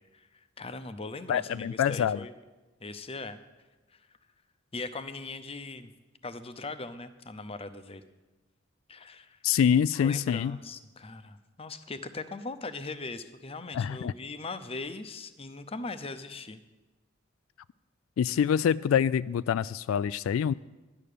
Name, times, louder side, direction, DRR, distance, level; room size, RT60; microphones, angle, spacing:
voice 1, 0.1-2.3 2.8-3.4 4.7-5.9 6.2-8.0 8.9-9.4 10.0-16.6, left 3 dB, 30° left, 11 dB, 0.7 m, -40 dB
voice 2, 1.3-2.2 9.4-10.6 13.7-14.1 18.2-20.5, left 8 dB, 90° left, 17 dB, 0.3 m, -26 dB
11.5 x 11.0 x 6.7 m, 1.2 s
head